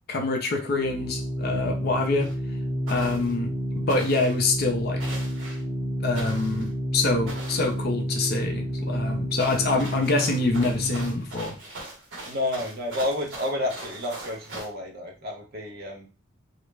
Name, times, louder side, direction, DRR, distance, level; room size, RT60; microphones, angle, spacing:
voice 1, 0.1-2.3 2.9-5.0 6.0-11.5, left 3 dB, 50° left, 3 dB, 0.5 m, -26 dB
Organ, 0.6-11.4, equal, 15° right, 0.7 m, -30 dB
sound 1, 2.2-2.3 2.9-3.3 3.9-4.4 5.0-5.6 6.1-6.7 7.3-7.7 9.4-14.7, right 2 dB, 65° right, 1.0 m, -40 dB
voice 2, 12.3-16.1, left 1 dB, 50° right, 0 dB, 0.7 m, -30 dB
2.3 x 2.0 x 3.2 m, 0.32 s
head